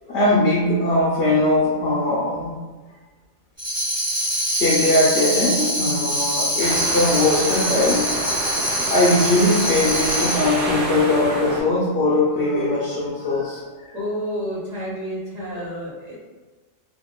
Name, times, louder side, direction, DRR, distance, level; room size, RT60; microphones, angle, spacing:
voice 1, 0.0-2.5 4.6-8.1 8.8-13.9, left 2 dB, 65° left, -6 dB, 0.8 m, -20 dB
Tambourine, 3.6-10.7, equal, 15° right, 0.6 m, -24 dB
sound 1, 6.6-11.6, right 1 dB, 75° right, 0.4 m, -28 dB
voice 2, 13.9-16.1, equal, 35° right, -10 dB, 1.2 m, -29 dB
2.7 x 2.3 x 2.2 m, 1.3 s
omnidirectional pair, 1.4 m